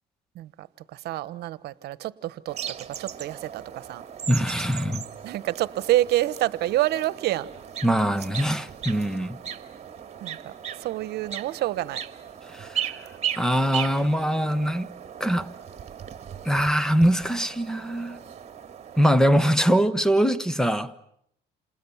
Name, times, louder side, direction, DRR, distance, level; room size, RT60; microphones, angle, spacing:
voice 1, 0.3-2.6 3.0-4.0 5.2-7.5 10.2-10.5 10.8-12.0, right 15 dB, 75° right, 1.1 m, -27 dB
sound 1, 2.5-19.2, right 9 dB, 40° right, 2.1 m, -37 dB
voice 2, 4.3-5.0 7.8-9.4 12.5-12.8 13.4-14.9 15.2-15.5 16.4-18.2 19.0-20.9, equal, 5° left, 1.1 m, -22 dB
28.0 x 28.0 x 7.2 m
cardioid pair, 110°, 17 cm